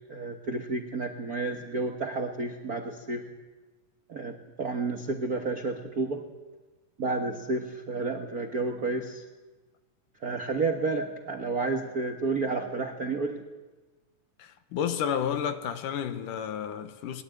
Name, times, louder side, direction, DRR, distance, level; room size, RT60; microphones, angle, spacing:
voice 1, 0.1-3.2 4.1-6.2 7.0-9.2 10.2-13.4, right 3 dB, 60° right, 0.9 m, -31 dB
voice 2, 14.4-17.2, left 8 dB, 75° left, 2.6 m, -31 dB
21.0 x 20.5 x 9.1 m
omnidirectional pair, 3.9 m